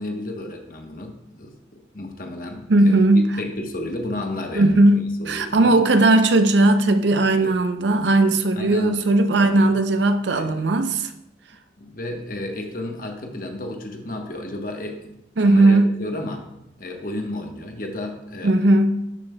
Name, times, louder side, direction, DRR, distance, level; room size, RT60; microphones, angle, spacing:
voice 1, 0.0-1.5 1.9-5.8 7.4-7.5 8.5-9.7 10.3-10.6 11.8-15.1 15.4-16.4 16.8-18.5, left 1 dB, 50° left, 1.1 m, -32 dB
voice 2, 2.7-3.3 4.6-11.1 15.4-15.9 18.4-19.0, right 2 dB, 75° right, 0.6 m, -17 dB
11.5 x 7.2 x 2.2 m
head